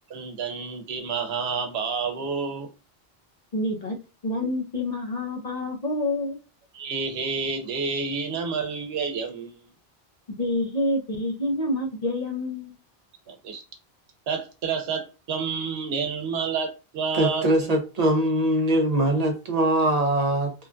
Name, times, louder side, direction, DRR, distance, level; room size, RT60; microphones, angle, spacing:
voice 1, 0.1-2.7 6.7-9.7 13.3-13.6 14.3-17.7, right 5 dB, 85° right, 0.9 m, -29 dB
voice 2, 3.5-4.0 4.2-6.4 10.4-12.7, left 1 dB, 50° left, 0.6 m, -27 dB
voice 3, 17.1-20.5, right 1 dB, 45° right, 0.6 m, -22 dB
3.0 x 2.2 x 2.4 m
omnidirectional pair, 1.0 m